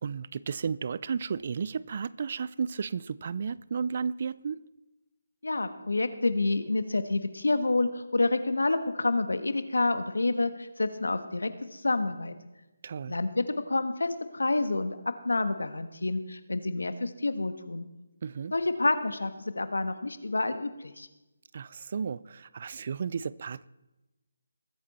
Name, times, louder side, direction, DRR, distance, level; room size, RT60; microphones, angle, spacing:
voice 1, 0.0-4.6 12.8-13.2 18.2-18.5 21.5-23.7, right 6 dB, 45° right, 0.4 m, -33 dB
voice 2, 5.4-12.3 13.1-17.9 18.5-21.1, left 2 dB, 85° left, 1.3 m, -28 dB
21.0 x 8.6 x 4.2 m
figure-of-eight pair, 160°, 0 cm